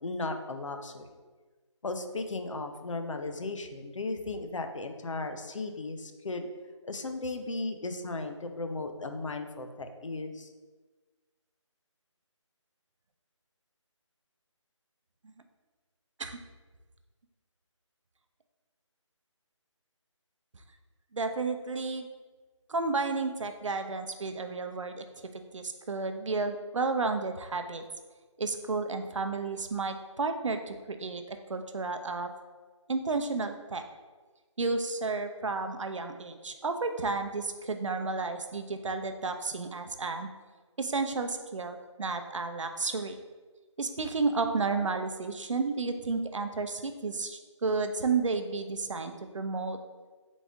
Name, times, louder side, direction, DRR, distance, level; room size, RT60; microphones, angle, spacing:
voice 1, 0.0-1.1 1.8-6.5 6.8-10.5, left 3 dB, 75° left, 6 dB, 0.6 m, -36 dB
voice 2, 21.1-22.0 22.7-25.0 25.3-27.8 28.4-32.3 32.9-33.8 34.6-40.3 40.8-43.2 43.8-49.8, right 4 dB, 70° right, 7 dB, 0.5 m, -32 dB
4.1 x 3.5 x 3.6 m, 1.3 s
figure-of-eight pair, 175°, 16 cm